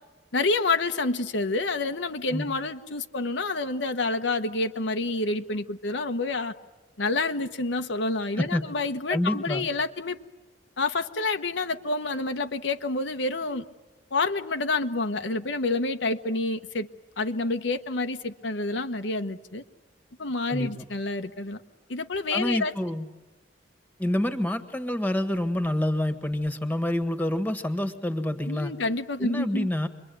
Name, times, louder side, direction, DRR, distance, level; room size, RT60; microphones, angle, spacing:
voice 1, 0.3-6.5 7.0-10.2 10.8-13.6 14.1-16.9 17.2-19.6 20.2-21.6 21.9-22.7 28.5-29.7, left 3 dB, 80° left, 7 dB, 1.2 m, -28 dB
voice 2, 8.4-8.7 9.1-9.7 20.5-20.8 22.3-23.1 24.0-28.7 29.2-29.9, left 1 dB, 10° left, 10 dB, 1.6 m, -27 dB
27.5 x 23.0 x 9.4 m, 1.2 s
head